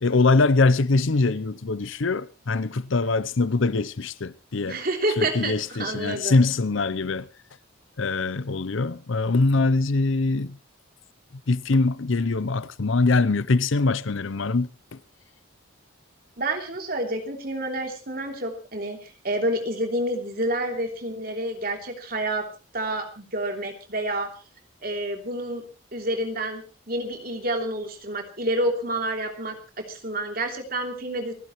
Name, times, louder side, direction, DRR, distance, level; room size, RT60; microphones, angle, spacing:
voice 1, 0.0-4.8 5.2-7.3 8.0-10.6 11.5-15.0, left 3 dB, 70° left, 0.7 m, -23 dB
voice 2, 4.7-6.4 16.4-19.0 19.2-22.5 22.7-24.3 24.8-25.6 25.9-29.6 29.9-31.3, right 1 dB, 45° right, 3.1 m, -28 dB
29.5 x 11.0 x 3.1 m
head